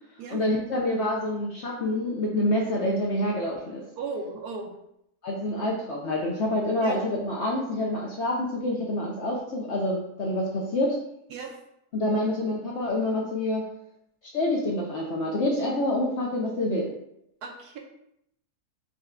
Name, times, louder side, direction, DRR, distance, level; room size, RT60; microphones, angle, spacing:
voice 1, 0.3-3.8 5.2-11.0 11.9-13.6 14.3-16.9, left 1 dB, 60° left, -2 dB, 0.7 m, -27 dB
voice 2, 4.0-4.7 6.8-7.0 11.3-11.6 17.4-17.8, right 4 dB, 75° right, 2 dB, 1.2 m, -36 dB
5.4 x 2.3 x 3.6 m, 0.78 s
omnidirectional pair, 1.8 m